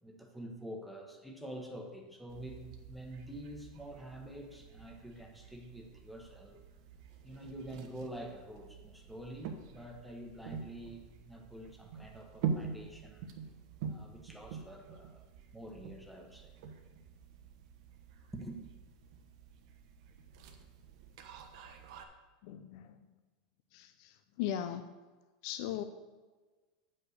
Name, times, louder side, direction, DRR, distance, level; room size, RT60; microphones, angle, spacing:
voice 1, 0.0-6.6 7.2-13.3 13.8-15.3 15.5-16.5 18.3-18.6, right 1 dB, ahead, 1 dB, 1.1 m, -47 dB
sound 1, 2.3-22.0, right 6 dB, 65° right, 1.1 m, -45 dB
voice 2, 22.4-23.1 23.7-24.9 25.4-25.8, left 11 dB, 60° left, 10 dB, 0.5 m, -39 dB
8.5 x 5.5 x 6.4 m, 1.3 s
supercardioid pair, 155°, 3 cm